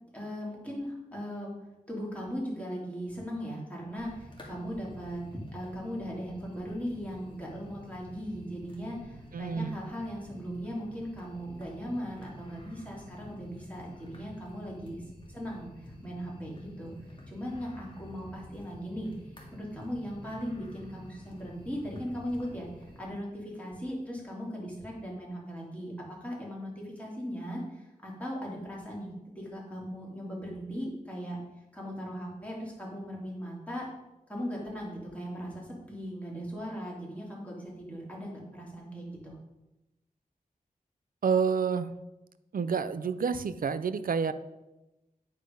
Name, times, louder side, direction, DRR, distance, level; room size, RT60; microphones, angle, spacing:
voice 1, 0.1-1.5 1.9-15.0 15.3-16.9 17.3-19.1 19.5-22.7 23.0-29.1 29.3-31.4 31.7-33.9 34.3-39.3, equal, 10° left, -4 dB, 3.0 m, -38 dB
sound 1, 3.9-23.1, equal, 35° left, 2.1 m, -50 dB
voice 2, 9.3-9.8 41.2-41.9 42.5-44.3, right 6 dB, 75° right, 12 dB, 0.5 m, -28 dB
9.6 x 4.5 x 5.3 m, 0.98 s
wide cardioid pair, 85°, 15 cm